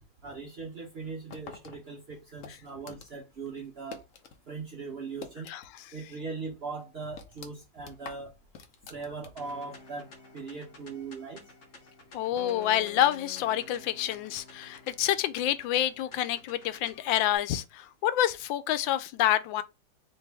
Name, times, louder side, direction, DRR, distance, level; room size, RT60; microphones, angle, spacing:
voice 1, 0.2-4.0 4.5-5.5 5.9-8.3 8.9-10.1 10.3-11.4, right 4 dB, 50° right, 0.7 m, -39 dB
sound 1, 1.3-4.4 4.7-5.9 6.2-6.3 6.8-9.6, left 6 dB, 60° left, 0.8 m, -48 dB
sound 2, 9.4-17.4, left 3 dB, 45° left, 1.1 m, -50 dB
voice 2, 12.1-19.6, left 12 dB, 90° left, 1.3 m, -28 dB
4.4 x 2.9 x 3.3 m
omnidirectional pair, 2.0 m